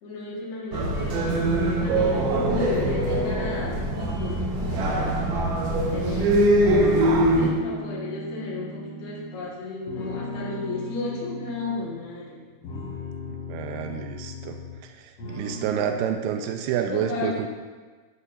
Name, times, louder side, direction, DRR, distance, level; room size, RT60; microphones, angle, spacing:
voice 1, 0.0-5.4 5.7-6.6 7.4-12.5 16.9-17.3, left 3 dB, 75° left, -6 dB, 3.6 m, -34 dB
sound 1, 0.7-7.5, right 1 dB, 70° right, 1.8 m, -23 dB
sound 2, 1.8-6.7 7.1-9.4 9.9-12.0 12.5-14.9 15.2-16.1, left 2 dB, 50° left, 1.7 m, -37 dB
voice 2, 13.5-14.6 14.8-17.5, right 9 dB, 90° right, 5 dB, 2.7 m, -29 dB
11.0 x 8.5 x 2.6 m, 1.4 s
omnidirectional pair, 4.5 m